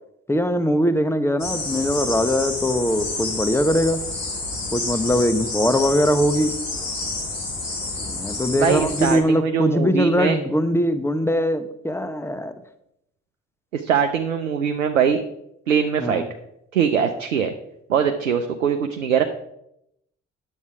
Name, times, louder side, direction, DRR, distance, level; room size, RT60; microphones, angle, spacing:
voice 1, 0.3-4.0 4.7-6.5 8.0-12.5 16.0-16.3, equal, 5° left, 11 dB, 1.1 m, -21 dB
sound 1, 1.4-9.2, left 2 dB, 90° left, 2.1 m, -29 dB
voice 2, 8.5-10.4 13.7-15.2 15.7-16.2 16.7-17.5 17.9-19.2, right 7 dB, 90° right, 6 dB, 0.6 m, -22 dB
9.7 x 7.5 x 4.7 m, 0.80 s
figure-of-eight pair, 45°, 37 cm